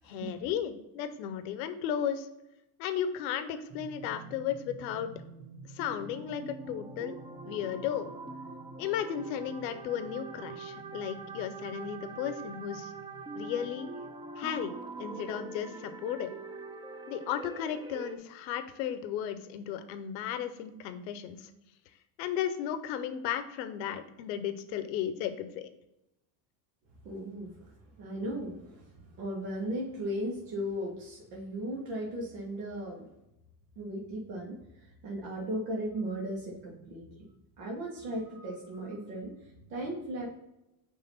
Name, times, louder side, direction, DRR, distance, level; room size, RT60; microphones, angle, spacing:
voice 1, 0.0-2.3 2.8-5.1 5.6-7.1 7.4-8.1 8.8-12.9 13.3-13.9 14.4-14.7 15.0-16.3 17.1-21.5 22.2-25.7, left 9 dB, 85° left, 10 dB, 0.8 m, -34 dB
sound 1, 3.7-18.2, right 3 dB, 10° right, 0.4 m, -44 dB
voice 2, 27.0-33.0 33.8-37.3 37.6-40.3, right 1 dB, 80° right, -3 dB, 1.7 m, -37 dB
5.6 x 3.2 x 5.5 m, 0.90 s
supercardioid pair, 105°, 50 cm